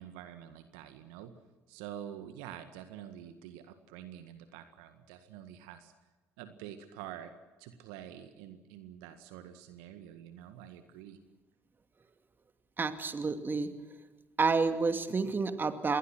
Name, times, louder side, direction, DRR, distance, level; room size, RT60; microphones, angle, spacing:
voice 1, 0.0-1.3 1.7-5.9 6.4-7.3 7.6-11.2, right 10 dB, 70° right, 9 dB, 1.7 m, -47 dB
voice 2, 12.8-13.7 14.4-16.0, right 4 dB, 30° right, 8 dB, 2.5 m, -29 dB
27.0 x 21.5 x 6.1 m, 1.2 s
figure-of-eight pair, 55°, 7 cm